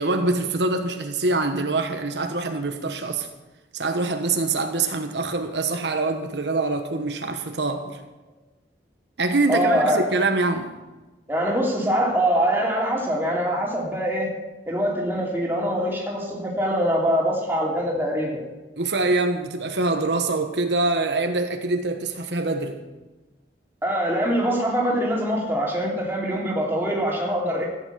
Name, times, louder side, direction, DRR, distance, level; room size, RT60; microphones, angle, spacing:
voice 1, 0.0-3.3 3.7-8.0 9.2-10.7 18.8-22.8, right 3 dB, 80° right, 1.2 m, -24 dB
voice 2, 9.5-10.0 11.3-14.3 14.7-18.4 23.8-27.7, equal, 15° right, 2.9 m, -23 dB
14.5 x 9.2 x 6.8 m
head